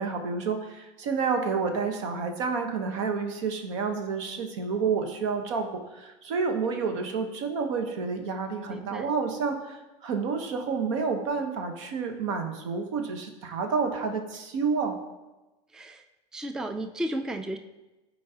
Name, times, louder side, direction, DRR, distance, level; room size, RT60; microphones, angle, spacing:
voice 1, 0.0-14.9, right 5 dB, 80° right, 5 dB, 1.1 m, -29 dB
voice 2, 8.7-9.1 15.7-16.0 16.3-17.6, right 1 dB, 5° right, 7 dB, 0.3 m, -33 dB
13.5 x 4.7 x 2.9 m, 1.1 s
supercardioid pair, 135°, 15 cm